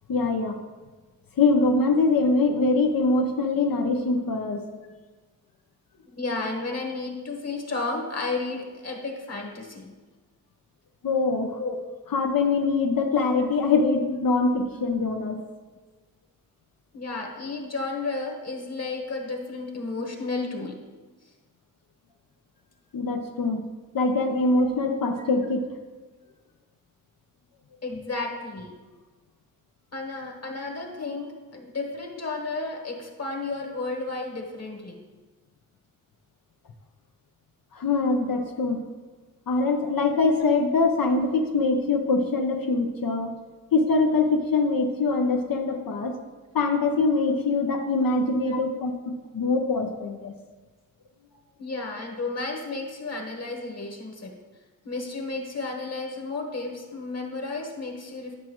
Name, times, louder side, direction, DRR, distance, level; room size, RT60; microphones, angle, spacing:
voice 1, 0.1-0.6 1.4-4.7 11.0-11.6 12.1-15.4 22.9-23.7 23.9-25.7 37.7-38.8 39.5-43.4 43.7-46.2 46.5-50.3, left 3 dB, 85° left, 3 dB, 0.7 m, -23 dB
voice 2, 6.1-9.9 11.6-11.8 13.7-13.8 16.9-20.8 24.6-24.7 27.8-28.7 29.9-35.0 40.4-40.5 45.1-45.3 45.7-45.8 48.0-48.1 48.5-48.6 51.6-54.3 54.8-58.3, left 3 dB, 50° left, 1 dB, 1.4 m, -32 dB
10.5 x 5.9 x 3.0 m, 1.3 s
wide cardioid pair, 105°, 33 cm